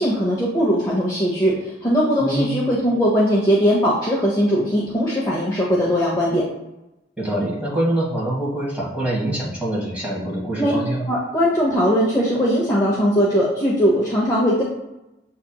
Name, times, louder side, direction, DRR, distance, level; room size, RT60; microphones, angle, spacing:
voice 1, 0.0-6.5 10.6-10.7 11.1-14.6, equal, 20° left, -5 dB, 0.6 m, -19 dB
voice 2, 2.2-2.5 7.2-11.0, right 1 dB, 5° right, -7 dB, 1.4 m, -24 dB
7.1 x 2.8 x 2.2 m, 0.95 s
head